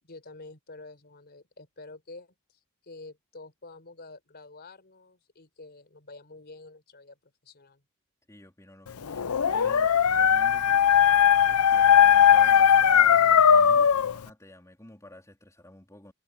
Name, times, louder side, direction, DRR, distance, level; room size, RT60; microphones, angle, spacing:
voice 1, 0.0-7.8, left 3 dB, 50° left, 4.5 m, -48 dB
voice 2, 8.3-16.1, left 1 dB, 15° left, 3.6 m, -50 dB
Dog, 9.1-14.1, left 8 dB, 90° left, 0.6 m, -19 dB
head